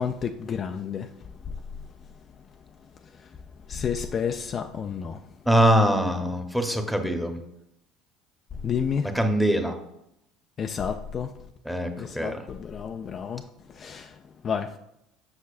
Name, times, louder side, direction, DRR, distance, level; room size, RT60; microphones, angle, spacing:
voice 1, 0.0-1.5 3.1-3.3 3.7-5.2 8.6-9.1 10.6-11.3 12.0-14.8, left 7 dB, 40° left, 0.4 m, -31 dB
voice 2, 5.5-7.4 9.1-9.8 11.6-12.4, equal, ahead, 1.0 m, -23 dB
7.3 x 6.0 x 2.5 m
hypercardioid pair, 60°, 0 cm